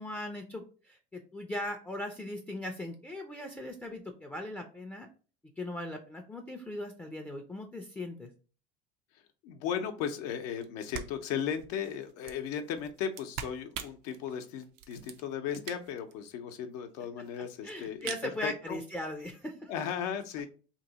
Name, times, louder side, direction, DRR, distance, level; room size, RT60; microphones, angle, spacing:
voice 1, 0.0-5.1 5.6-8.3 17.3-19.7, left 1 dB, 10° left, 3 dB, 0.4 m, -39 dB
voice 2, 9.4-18.8 19.7-20.5, left 8 dB, 80° left, 6 dB, 0.6 m, -36 dB
sound 1, 10.6-10.7 10.9-16.1 16.5-16.6 16.8-16.9 17.0-17.5 17.8-18.3, right 9 dB, 80° right, 0.5 m, -44 dB
2.9 x 2.7 x 3.9 m, 0.38 s
supercardioid pair, 115°, 21 cm